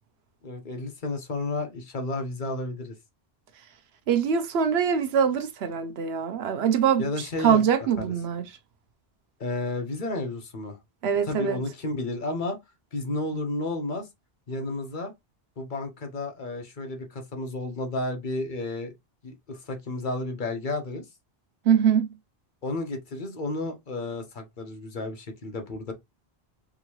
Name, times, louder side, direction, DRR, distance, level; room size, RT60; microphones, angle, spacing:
voice 1, 0.4-2.9 7.0-7.6 8.0-8.1 9.4-10.8 11.2-12.6 12.9-14.1 14.5-15.1 15.6-18.9 19.2-21.0 22.6-25.9, left 2 dB, 50° left, 1.0 m, -32 dB
voice 2, 4.1-7.0 7.4-8.4 11.0-11.6 21.7-22.1, right 8 dB, 80° right, 0.9 m, -23 dB
3.7 x 2.7 x 2.9 m
omnidirectional pair, 1.1 m